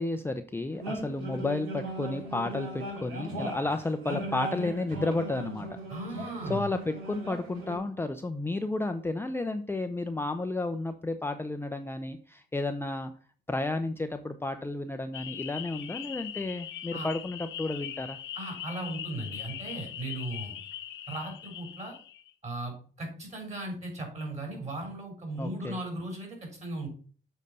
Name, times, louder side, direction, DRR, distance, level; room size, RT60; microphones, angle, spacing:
voice 1, 0.0-5.7 6.5-13.1 13.5-18.2 25.4-25.8, left 2 dB, 10° left, 7 dB, 0.5 m, -32 dB
sound 1, 0.8-7.8, right 1 dB, 85° right, 2.6 m, -38 dB
voice 2, 5.9-6.7 16.9-17.1 18.3-20.6 21.1-22.0 22.4-26.9, right 2 dB, 35° right, 2 dB, 4.1 m, -37 dB
sound 2, 15.1-22.3, left 11 dB, 70° left, 0.8 m, -41 dB
7.4 x 4.1 x 5.3 m, 0.43 s
cardioid pair, 90°, 20 cm